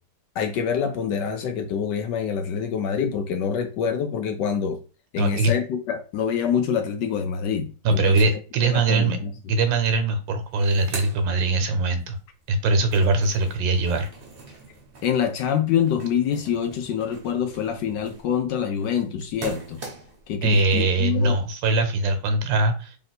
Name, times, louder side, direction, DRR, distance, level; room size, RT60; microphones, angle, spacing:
voice 1, 0.4-4.8 5.1-8.3 8.6-9.3 15.0-19.8 20.3-21.4, left 7 dB, 75° left, 1.1 m, -26 dB
voice 2, 5.2-5.5 7.8-9.2 9.5-12.2 12.5-14.1 20.4-23.0, right 3 dB, 70° right, 1.4 m, -22 dB
sound 1, 9.9-10.0 10.3-12.0 12.4-20.3, right 3 dB, 40° right, 0.8 m, -42 dB
3.4 x 2.6 x 4.0 m
omnidirectional pair, 2.2 m